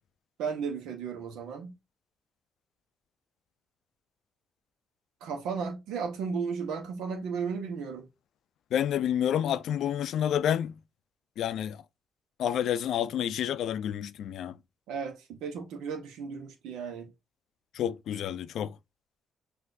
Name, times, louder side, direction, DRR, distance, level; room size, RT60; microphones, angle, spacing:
voice 1, 0.4-1.8 5.2-8.1 14.9-17.1, right 6 dB, 90° right, 1.1 m, -34 dB
voice 2, 8.7-10.7 11.4-11.8 12.4-14.5 17.7-18.7, left 10 dB, 75° left, 0.4 m, -29 dB
6.1 x 2.7 x 2.5 m
cardioid pair, 90°, 0 cm